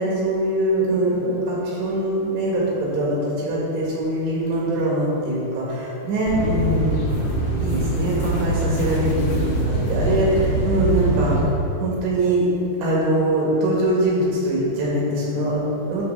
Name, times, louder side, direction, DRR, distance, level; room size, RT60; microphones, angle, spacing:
voice 1, 0.0-7.0 7.6-11.4 11.8-12.5 12.8-16.0, right 1 dB, 90° right, -5 dB, 4.0 m, -22 dB
sound 1, 6.2-11.4, right 1 dB, 55° left, 1.8 m, -23 dB
9.5 x 3.3 x 6.6 m, 2.7 s
omnidirectional pair, 4.9 m